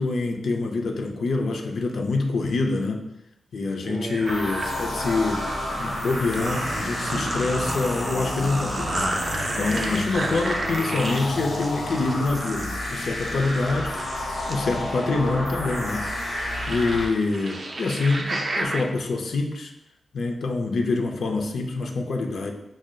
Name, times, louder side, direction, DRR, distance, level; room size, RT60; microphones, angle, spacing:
voice 1, 0.0-3.0 3.5-5.5 5.8-16.1 16.7-19.7 20.1-22.5, left 3 dB, 70° left, 4 dB, 0.4 m, -26 dB
sound 1, 3.9-18.8, right 2 dB, 35° right, 0.4 m, -32 dB
sound 2, 4.3-17.1, left 1 dB, 90° left, 0.8 m, -31 dB
6.0 x 2.0 x 2.2 m, 0.87 s
wide cardioid pair, 160°, 0 cm